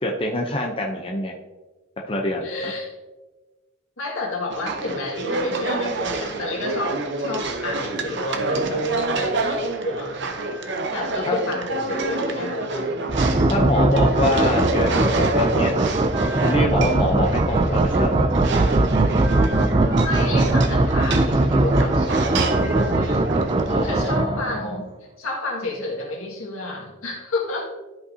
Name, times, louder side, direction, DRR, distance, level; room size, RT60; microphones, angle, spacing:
voice 1, 0.0-1.3 2.1-2.7 11.2-11.4 13.5-15.7 16.4-18.2 23.7-24.8, left 1 dB, 25° left, 1 dB, 0.6 m, -25 dB
voice 2, 2.4-2.9 4.0-10.3 10.9-13.1 20.0-23.3 23.8-24.9 25.2-27.7, left 2 dB, 80° left, -1 dB, 1.9 m, -31 dB
sound 1, 4.5-24.2, right 2 dB, 55° right, 0.8 m, -28 dB
sound 2, 13.1-24.8, right 2 dB, 25° right, 0.3 m, -20 dB
12.5 x 5.4 x 2.7 m, 1.2 s
head